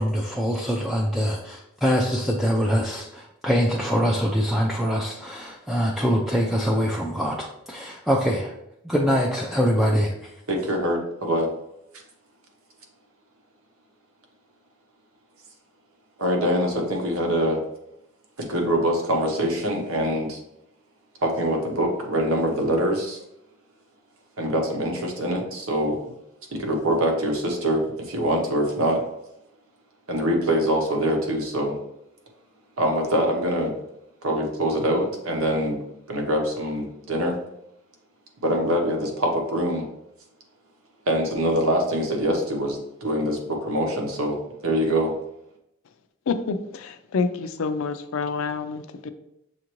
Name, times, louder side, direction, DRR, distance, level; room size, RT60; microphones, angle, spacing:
voice 1, 0.0-8.5 8.8-10.1, equal, ahead, -3 dB, 0.3 m, -24 dB
voice 2, 10.5-11.5 16.2-17.6 18.4-20.4 21.2-23.2 24.4-26.0 26.5-29.0 30.1-31.8 32.8-33.7 34.2-35.8 36.1-37.4 38.4-39.9 41.1-45.2, equal, 75° right, 2 dB, 0.9 m, -24 dB
voice 3, 46.3-49.1, left 4 dB, 70° left, 9 dB, 0.4 m, -28 dB
6.3 x 2.5 x 3.0 m, 0.82 s
head